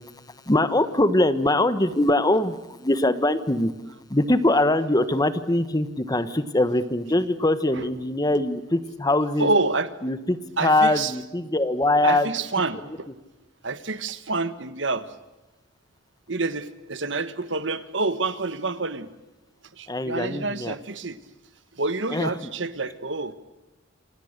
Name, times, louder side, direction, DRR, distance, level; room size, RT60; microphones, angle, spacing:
voice 1, 0.5-3.7 4.1-9.5 10.0-12.3 19.9-20.7 22.1-22.5, left 1 dB, 20° left, 12 dB, 1.3 m, -22 dB
voice 2, 9.4-9.9 10.6-11.1 12.0-13.1 13.6-15.1 16.3-19.1 19.8-21.2 21.8-23.3, right 3 dB, 70° right, 13 dB, 1.5 m, -27 dB
28.0 x 26.0 x 6.7 m, 1.1 s
head